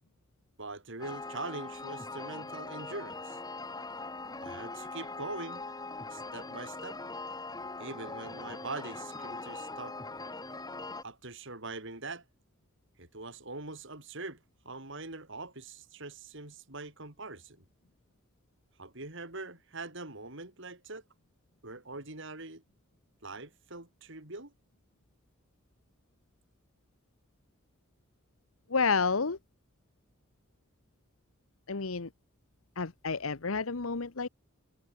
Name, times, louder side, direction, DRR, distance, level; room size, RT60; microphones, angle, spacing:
voice 1, 0.6-3.4 4.4-5.6 6.1-7.0 7.8-10.0 11.0-12.2 13.0-14.4 14.6-17.6 18.8-21.0 21.6-22.6 23.2-24.5, right 3 dB, 60° right, 5.6 m, -43 dB
sound 1, 1.0-11.0, left 3 dB, 20° left, 3.5 m, -41 dB
voice 2, 28.7-29.4 31.7-32.1 32.8-34.3, left 4 dB, 80° left, 1.1 m, -30 dB
head